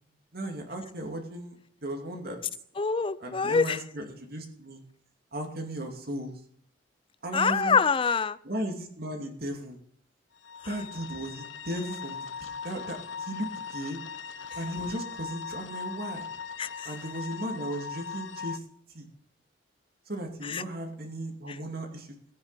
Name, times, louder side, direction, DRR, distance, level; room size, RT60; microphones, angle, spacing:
voice 1, 0.3-1.6 1.8-2.4 3.2-4.8 5.3-6.4 7.2-7.8 8.4-9.8 10.6-14.0 14.6-16.3 16.8-18.6 18.9-19.1 20.1-22.1, right 1 dB, 55° right, 3 dB, 2.6 m, -36 dB
voice 2, 2.8-3.8 7.3-8.4 16.6-16.9 20.4-20.6 21.5-21.6, left 5 dB, 30° left, 18 dB, 0.5 m, -25 dB
sound 1, 10.4-18.6, left 6 dB, 85° left, 0.8 m, -39 dB
17.0 x 9.5 x 4.2 m, 0.63 s
head